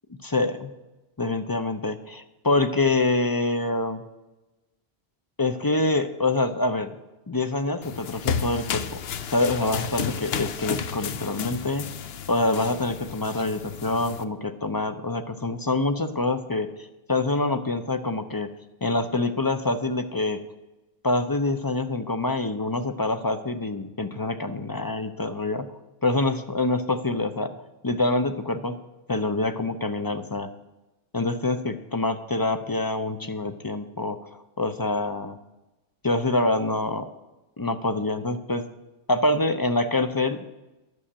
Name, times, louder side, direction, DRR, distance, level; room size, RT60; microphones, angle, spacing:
voice 1, 0.2-0.7 1.2-4.0 5.4-6.9 7.3-9.0 9.3-11.9 12.3-18.5 18.8-20.4 21.0-25.7 26.0-27.5 27.8-28.8 29.1-30.5 31.1-35.4 36.0-37.1 37.6-38.6 39.1-40.4, left 2 dB, 25° left, 8 dB, 0.5 m, -26 dB
sound 1, 7.8-14.2, left 7 dB, 70° left, 0.9 m, -32 dB
11.5 x 6.3 x 8.7 m, 1.1 s
omnidirectional pair, 1.1 m